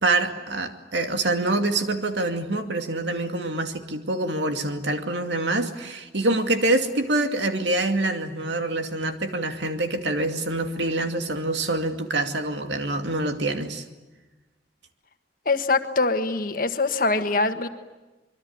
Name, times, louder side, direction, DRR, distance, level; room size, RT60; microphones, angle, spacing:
voice 1, 0.0-13.8, right 2 dB, 75° right, 6 dB, 2.5 m, -25 dB
voice 2, 15.4-17.7, left 3 dB, 50° left, 8 dB, 1.6 m, -23 dB
26.0 x 23.0 x 9.6 m, 1.1 s
head